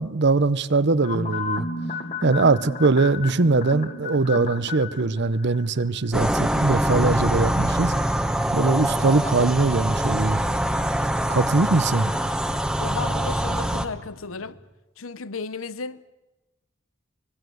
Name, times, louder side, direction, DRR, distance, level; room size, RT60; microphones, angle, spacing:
voice 1, 0.0-1.7 2.2-7.9 8.5-10.4 11.3-12.1, right 3 dB, 55° right, 0.8 m, -21 dB
sound 1, 1.0-6.4 6.7-6.8, left 3 dB, 40° left, 2.3 m, -33 dB
sound 2, 6.1-13.9, right 1 dB, 5° right, 1.2 m, -24 dB
sound 3, 6.7-14.5, equal, 70° left, 3.4 m, -50 dB
voice 2, 12.8-14.6 15.0-16.0, left 4 dB, 85° left, 1.0 m, -34 dB
25.0 x 21.0 x 8.0 m
head